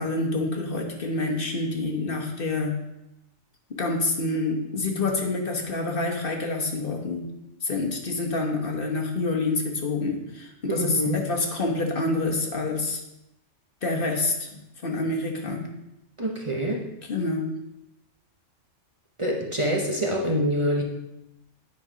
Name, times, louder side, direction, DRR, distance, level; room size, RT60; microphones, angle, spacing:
voice 1, 0.0-2.8 3.7-7.3 7.6-13.0 13.8-15.7 17.1-17.5, left 3 dB, 50° left, 1 dB, 1.2 m, -27 dB
voice 2, 10.7-11.2 16.2-16.8 19.2-20.8, equal, 30° right, -1 dB, 0.8 m, -25 dB
9.6 x 3.7 x 4.9 m, 0.91 s
omnidirectional pair, 1.3 m